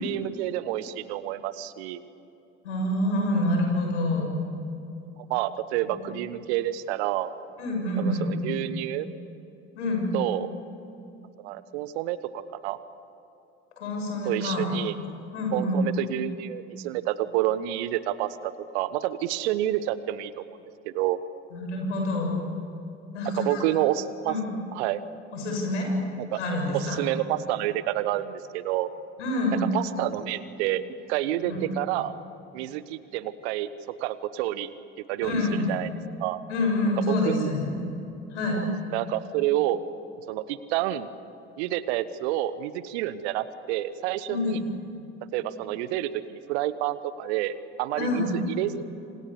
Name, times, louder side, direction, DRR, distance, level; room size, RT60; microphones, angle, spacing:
voice 1, 0.0-2.0 5.3-7.3 8.0-9.1 10.1-10.5 11.4-12.8 14.2-15.0 15.5-20.6 20.8-21.2 23.3-24.4 24.7-25.0 26.2-26.4 26.7-28.9 29.7-30.8 31.1-32.1 32.5-33.7 34.0-34.7 35.0-35.3 35.7-35.9 36.2-36.4 37.1-37.5 38.9-39.8 40.3-41.1 41.6-44.6 45.3-48.8, right 14 dB, 65° right, 15 dB, 1.3 m, -29 dB
voice 2, 2.6-4.3 7.6-8.3 9.7-10.1 13.8-14.7 15.3-15.9 21.5-22.3 23.1-23.6 24.3-24.5 25.3-25.9 26.3-27.0 29.2-29.7 31.5-31.6 35.2-35.7 36.5-37.8 38.3-38.6 44.3-44.6 47.9-48.4, left 1 dB, 75° left, 1 dB, 7.2 m, -27 dB
27.5 x 26.5 x 7.1 m, 2.8 s
figure-of-eight pair, 65°, 35 cm